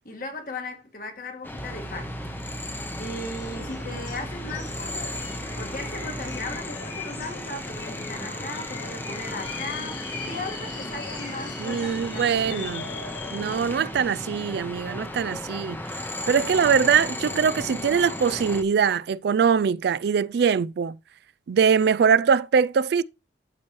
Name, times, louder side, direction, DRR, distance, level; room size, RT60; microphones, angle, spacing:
voice 1, 0.0-2.2 3.0-10.0 10.3-13.0, left 2 dB, 50° left, 1.9 m, -37 dB
sound 1, 1.4-18.6, left 1 dB, 10° left, 0.8 m, -35 dB
sound 2, 1.6-6.6, right 1 dB, 35° right, 0.7 m, -40 dB
sound 3, 3.4-13.7, left 3 dB, 70° left, 3.3 m, -39 dB
voice 2, 11.6-12.9 13.3-21.0 21.5-23.0, right 6 dB, 65° right, 0.3 m, -22 dB
13.0 x 4.5 x 3.1 m
head